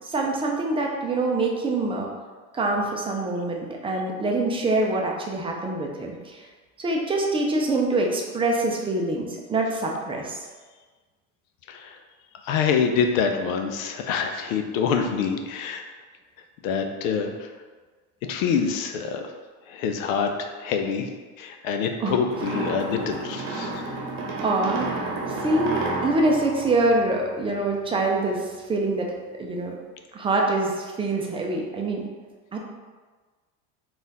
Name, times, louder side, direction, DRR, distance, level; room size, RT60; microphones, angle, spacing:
voice 1, 0.0-2.1 2.5-6.4 6.8-10.4 22.0-22.2 24.4-29.1 29.4-29.8 30.1-32.0 32.5-32.6, right 2 dB, 15° right, 0 dB, 0.4 m, -25 dB
voice 2, 12.4-15.8 16.6-17.5 18.2-19.2 19.7-21.1 21.4-23.7, left 6 dB, 80° left, 5 dB, 0.6 m, -26 dB
sound 1, 22.3-27.6, right 2 dB, 55° right, 0.9 m, -31 dB
4.0 x 2.5 x 4.0 m, 1.4 s
supercardioid pair, 125°, 40 cm